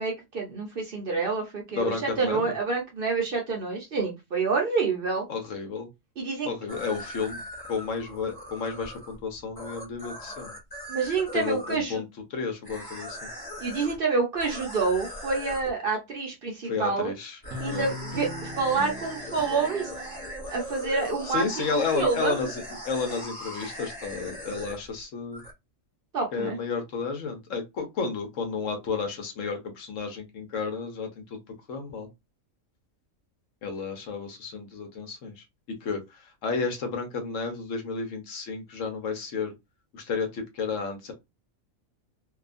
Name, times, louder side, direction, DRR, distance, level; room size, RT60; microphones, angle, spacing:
voice 1, 0.0-5.3 6.2-6.5 10.9-12.0 13.6-17.1 17.6-19.9 20.5-22.5 26.1-26.6, right 4 dB, 50° right, 0.7 m, -28 dB
voice 2, 1.7-2.5 5.3-5.9 6.4-7.4 7.7-10.5 11.3-12.1 12.3-13.3 16.6-17.4 17.7-17.9 21.3-25.4 26.3-31.4 31.7-32.1 33.6-39.5 39.9-41.1, left 5 dB, 70° left, 1.1 m, -32 dB
sound 1, 6.7-11.8 12.6-14.0 14.4-15.7 17.4-25.0 25.3-25.5, left 1 dB, 25° left, 0.5 m, -40 dB
Guitar, 17.5-20.8, left 1 dB, 75° right, 1.1 m, -40 dB
2.7 x 2.3 x 2.5 m
omnidirectional pair, 1.4 m